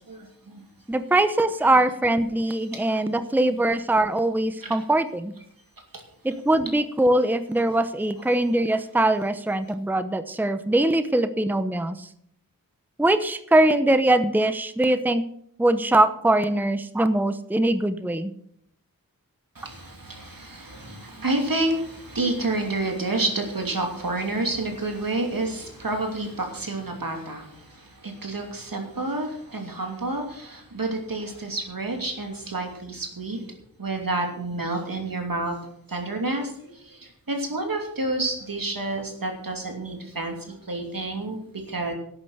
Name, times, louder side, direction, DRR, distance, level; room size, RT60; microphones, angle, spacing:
voice 1, 0.1-0.6 2.7-2.8 3.2-3.3 4.6-4.8 5.9-6.0 19.5-35.6 35.9-41.4 41.7-41.9, right 2 dB, 75° right, 2 dB, 2.9 m, -29 dB
voice 2, 0.9-5.3 6.2-12.1 13.0-15.2 15.6-18.3, right 1 dB, 5° right, 11 dB, 0.8 m, -22 dB
12.0 x 8.8 x 6.5 m, 0.69 s
wide cardioid pair, 50°, 34 cm